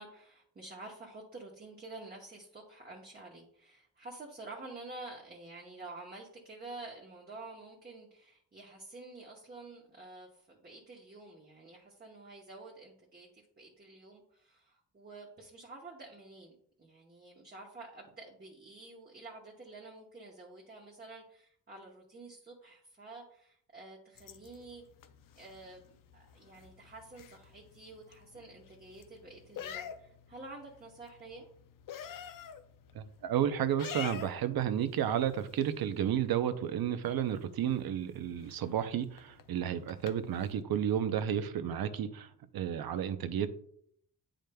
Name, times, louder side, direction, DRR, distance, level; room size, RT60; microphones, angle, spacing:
voice 1, 0.0-24.8 25.3-31.5, right 2 dB, 25° right, -1 dB, 0.9 m, -49 dB
sound 1, 24.2-40.6, left 8 dB, 65° left, 0.5 m, -49 dB
voice 2, 32.9-43.5, right 9 dB, 85° right, 11 dB, 0.6 m, -32 dB
9.1 x 5.0 x 2.2 m, 0.65 s
wide cardioid pair, 155°, 35 cm